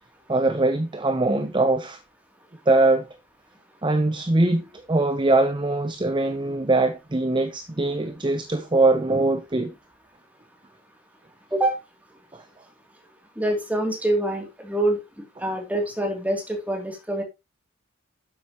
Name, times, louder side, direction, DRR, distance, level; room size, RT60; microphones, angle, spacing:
voice 1, 0.3-2.0 2.7-3.1 3.8-9.7 12.3-12.4, right 2 dB, 25° right, 0.7 m, -22 dB
voice 2, 13.4-15.0 15.4-17.2, right 1 dB, 5° right, 2.7 m, -25 dB
11.0 x 7.9 x 3.0 m
head